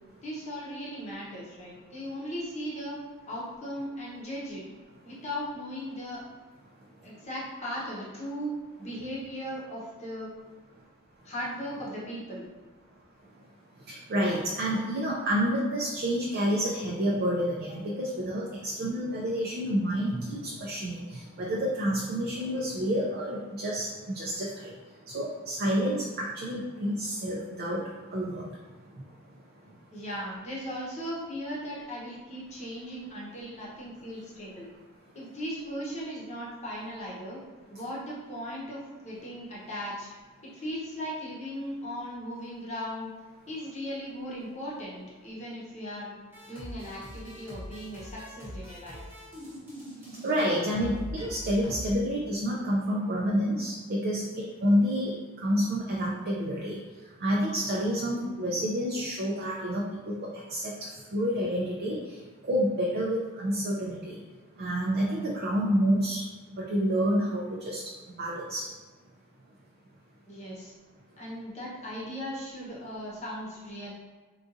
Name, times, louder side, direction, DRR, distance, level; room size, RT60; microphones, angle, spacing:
voice 1, 0.2-3.0 3.3-4.6 5.0-6.2 7.0-10.3 11.2-12.5 29.9-34.7 35.1-37.4 37.7-40.1 40.4-43.1 43.5-46.1 46.4-49.0 70.3-70.7 71.2-73.9, equal, 30° left, -6 dB, 0.8 m, -37 dB
voice 2, 13.9-23.9 24.1-24.7 25.1-27.8 28.1-28.4 50.2-55.1 55.4-56.8 57.2-60.2 60.5-62.2 62.4-64.2 64.6-66.2 66.6-67.8 68.2-68.7, equal, 45° right, -4 dB, 0.4 m, -29 dB
sound 1, 46.3-51.9, equal, 10° right, 0.9 m, -42 dB
3.8 x 2.4 x 2.6 m, 1.3 s
head